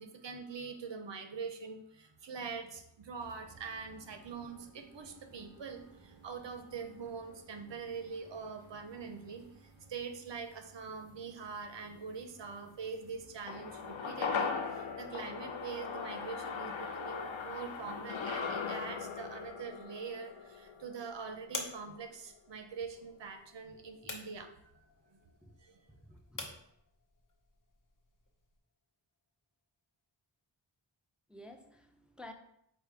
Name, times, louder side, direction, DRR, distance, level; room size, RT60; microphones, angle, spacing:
voice 1, 0.0-24.7 25.1-25.2 25.6-25.8, right 5 dB, 70° right, 6 dB, 0.7 m, -44 dB
sound 1, 3.2-19.5, right 1 dB, 55° right, 1.6 m, -61 dB
sound 2, 13.5-22.0 22.3-22.4, left 5 dB, 80° left, 0.6 m, -39 dB
sound 3, 19.4-28.6, left 3 dB, 45° left, 0.8 m, -49 dB
voice 2, 25.9-26.6 31.3-32.3, left 1 dB, ahead, 5 dB, 0.4 m, -52 dB
5.0 x 2.2 x 4.6 m, 0.75 s
wide cardioid pair, 45°, 46 cm